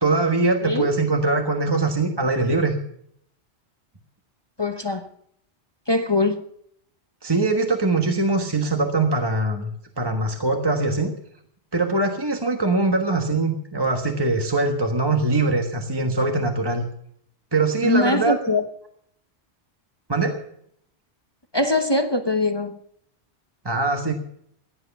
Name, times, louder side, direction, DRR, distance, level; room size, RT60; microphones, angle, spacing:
voice 1, 0.0-2.8 7.2-9.7 10.0-11.1 11.7-16.8 17.5-18.3 20.1-20.4 23.6-24.1, right 3 dB, 20° right, 1.4 m, -22 dB
voice 2, 4.6-5.1 5.9-6.4 17.8-18.7 21.5-22.8, left 2 dB, 25° left, 0.9 m, -22 dB
15.5 x 11.0 x 7.0 m
omnidirectional pair, 1.2 m